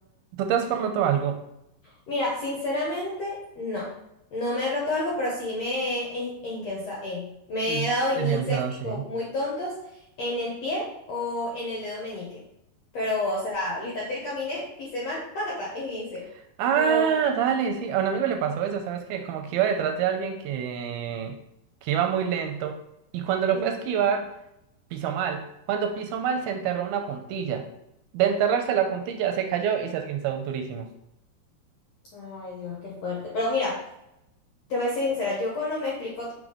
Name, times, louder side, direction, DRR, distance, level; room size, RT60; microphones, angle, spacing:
voice 1, 0.4-1.4 7.7-9.1 16.6-21.4 21.8-22.8 23.1-24.3 24.9-27.7 28.1-30.9, right 8 dB, 80° right, 5 dB, 2.4 m, -26 dB
voice 2, 2.1-3.9 4.3-9.7 10.2-12.4 12.9-16.2 16.7-17.1 23.5-23.7 32.1-33.9 34.7-36.3, left 2 dB, 65° left, -4 dB, 1.7 m, -29 dB
6.2 x 3.8 x 5.1 m, 0.83 s
omnidirectional pair, 4.7 m